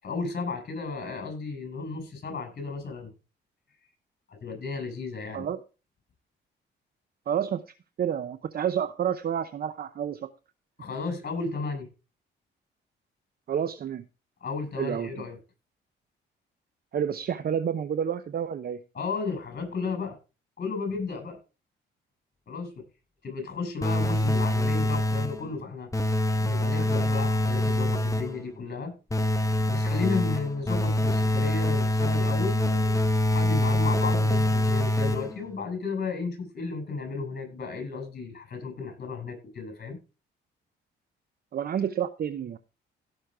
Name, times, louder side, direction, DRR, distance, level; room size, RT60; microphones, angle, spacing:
voice 1, 0.0-3.1 4.4-5.5 10.8-11.9 14.4-15.4 18.9-20.2 20.6-21.4 22.5-22.8 23.2-25.9 26.4-28.9 29.6-33.0 33.3-40.0, left 4 dB, 50° left, 5 dB, 6.8 m, -33 dB
voice 2, 7.3-10.3 13.5-14.0 14.8-15.3 16.9-18.8 41.5-42.6, right 8 dB, 50° right, 12 dB, 0.8 m, -29 dB
sound 1, 23.8-25.5 25.9-28.4 29.1-35.5, left 1 dB, 15° left, 1.0 m, -25 dB
16.5 x 6.4 x 3.6 m, 0.32 s
cardioid pair, 90°, 20 cm